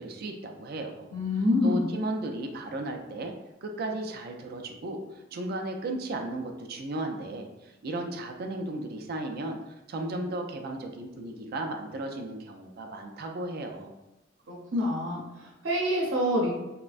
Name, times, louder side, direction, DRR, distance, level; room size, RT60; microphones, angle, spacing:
voice 1, 0.0-1.1 1.6-3.3 3.6-5.0 5.3-13.9, right 2 dB, 55° right, 4 dB, 0.4 m, -35 dB
voice 2, 1.1-1.8 14.5-16.5, left 1 dB, 85° right, -3 dB, 0.7 m, -26 dB
3.2 x 2.1 x 2.4 m, 0.98 s
head